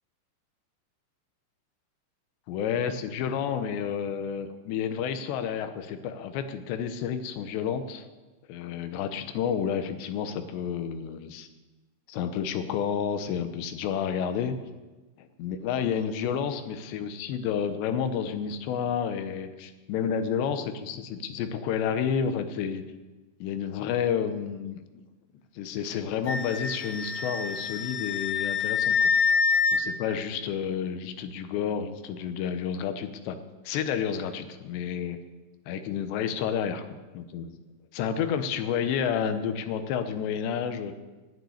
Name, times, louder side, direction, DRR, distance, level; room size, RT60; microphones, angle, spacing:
voice 1, 2.5-8.0 8.5-11.5 12.1-14.6 15.2-22.8 23.4-24.8 25.6-29.0 29.7-33.4 33.6-35.2 35.7-36.9 37.1-37.6 37.9-40.9, left 7 dB, 75° left, 9 dB, 2.9 m, -30 dB
Wind instrument woodwind instrument, 26.3-29.8, left 5 dB, 45° left, 1.6 m, -26 dB
16.0 x 6.7 x 9.7 m, 1.2 s
omnidirectional pair, 5.7 m